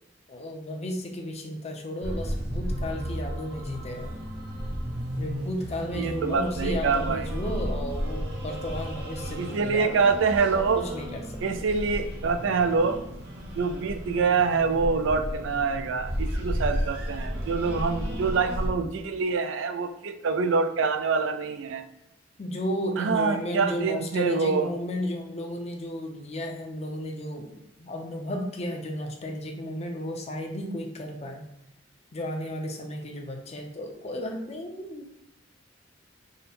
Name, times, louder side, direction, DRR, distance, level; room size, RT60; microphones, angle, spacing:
voice 1, 0.3-4.1 5.2-10.1 10.5-11.4 22.4-27.5 27.8-31.4 32.1-35.2, left 1 dB, 35° left, 2 dB, 0.6 m, -33 dB
sound 1, 2.0-18.7, equal, 60° right, 0.9 m, -33 dB
voice 2, 5.9-7.3 9.4-10.8 11.4-13.1 13.6-21.8 23.0-24.7, right 5 dB, 75° right, 8 dB, 0.4 m, -25 dB
3.7 x 2.1 x 4.1 m, 0.80 s
head